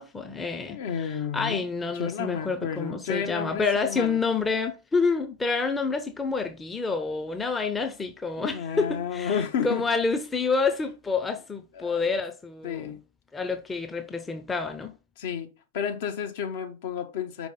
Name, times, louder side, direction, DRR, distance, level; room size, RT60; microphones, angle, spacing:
voice 1, 0.0-12.9 13.3-14.9, left 4 dB, 15° left, 0.8 m, -28 dB
voice 2, 0.7-1.6 1.9-4.2 8.4-9.8 11.7-12.1 12.6-13.0 15.2-15.5 15.7-17.5, left 7 dB, 55° left, 1.1 m, -31 dB
5.3 x 5.2 x 3.9 m
figure-of-eight pair, 90°, 0 cm